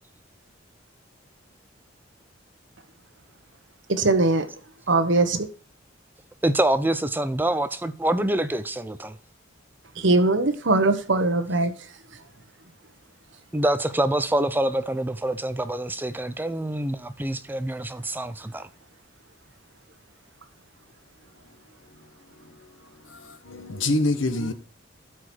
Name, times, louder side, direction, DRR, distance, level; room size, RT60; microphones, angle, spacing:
voice 1, 3.9-4.5 4.9-5.5 10.0-11.7, right 2 dB, 65° right, 1.2 m, -21 dB
voice 2, 6.4-9.2 13.5-18.7, right 1 dB, 10° right, 0.5 m, -26 dB
voice 3, 23.1-24.5, left 2 dB, 80° left, 1.2 m, -26 dB
12.0 x 4.8 x 4.4 m
head